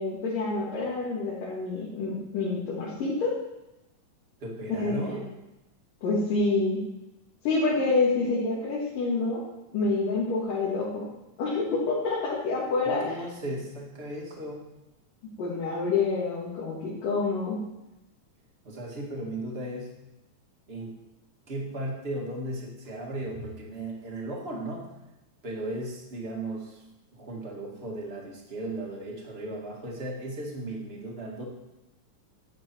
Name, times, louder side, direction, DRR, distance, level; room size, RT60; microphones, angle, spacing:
voice 1, 0.0-3.4 4.7-5.1 6.0-6.8 7.4-9.4 9.7-11.1 11.4-13.1 15.4-17.6, left 3 dB, 80° left, -6 dB, 3.6 m, -27 dB
voice 2, 4.4-5.2 13.0-14.7 18.6-19.9 20.7-21.0 21.5-24.9 25.4-26.8 27.1-31.4, right 1 dB, 25° right, -2 dB, 1.5 m, -36 dB
11.5 x 8.1 x 4.5 m, 0.96 s
omnidirectional pair, 3.9 m